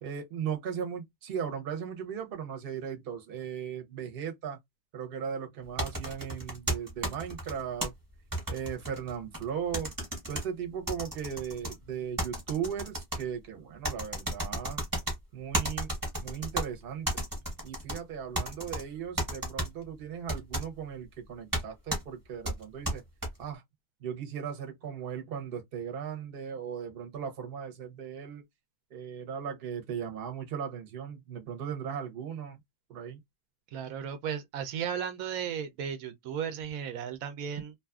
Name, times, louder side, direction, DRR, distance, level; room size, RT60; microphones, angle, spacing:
voice 1, 0.0-4.6 4.9-7.9 8.5-9.9 10.3-14.8 15.3-15.9 16.2-17.2 17.6-23.0 23.4-23.6 24.0-28.4 28.9-32.6 32.9-33.2, right 7 dB, 50° right, 0.9 m, -37 dB
sound 1, 5.8-7.9 8.3-9.4 9.7-10.4 10.9-11.7 12.2-13.2 13.8-15.1 15.5-16.6 17.0-18.0 18.3-18.8 19.2-19.7 20.3-20.6 21.5-21.6 21.9-22.0 22.4-23.3, right 1 dB, 15° right, 0.9 m, -32 dB
voice 2, 33.7-37.7, right 8 dB, 80° right, 1.0 m, -35 dB
2.7 x 2.4 x 2.3 m
omnidirectional pair, 1.4 m